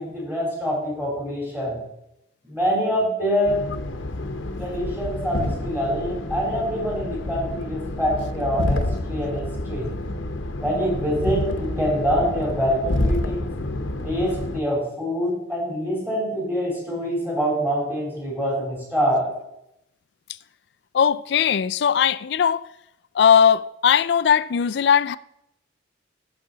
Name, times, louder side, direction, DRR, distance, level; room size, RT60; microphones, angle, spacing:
voice 1, 0.0-1.8 2.4-3.6 4.6-8.8 9.1-9.9 10.6-13.5 14.0-19.3, equal, 10° right, 3.4 m, -25 dB
sound 1, 3.4-14.6, left 1 dB, 80° left, 0.9 m, -28 dB
voice 2, 20.9-22.6 23.1-25.2, left 7 dB, 60° left, 0.3 m, -19 dB
14.5 x 5.9 x 3.9 m
head